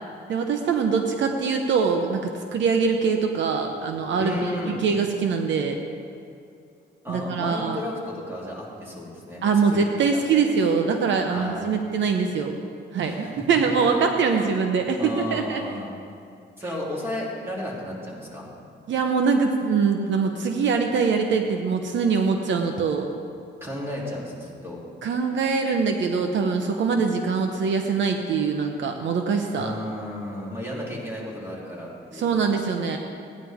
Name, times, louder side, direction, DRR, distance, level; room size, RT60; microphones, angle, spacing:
voice 1, 0.3-5.8 7.1-7.8 9.4-12.6 12.9-15.6 18.9-23.1 25.0-29.7 32.1-33.0, right 5 dB, 70° right, 4 dB, 0.9 m, -23 dB
voice 2, 4.2-4.8 7.0-9.4 9.7-9.8 10.1-10.4 11.3-11.7 13.0-13.4 13.8-13.9 14.3-14.7 15.0-15.9 16.6-18.5 23.6-24.8 29.5-32.4, left 1 dB, 10° right, -5 dB, 3.1 m, -33 dB
16.5 x 10.0 x 3.6 m, 2.4 s
cardioid pair, 115°, 20 cm